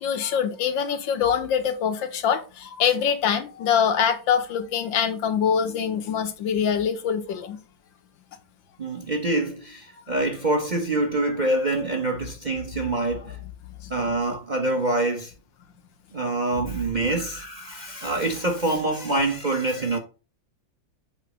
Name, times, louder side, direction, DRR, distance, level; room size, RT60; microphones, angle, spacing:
voice 1, 0.0-7.6, left 7 dB, 85° left, 1.8 m, -24 dB
voice 2, 8.8-13.4 13.9-15.3 16.1-20.0, right 2 dB, 35° right, 0.8 m, -25 dB
8.1 x 2.9 x 6.0 m
omnidirectional pair, 2.0 m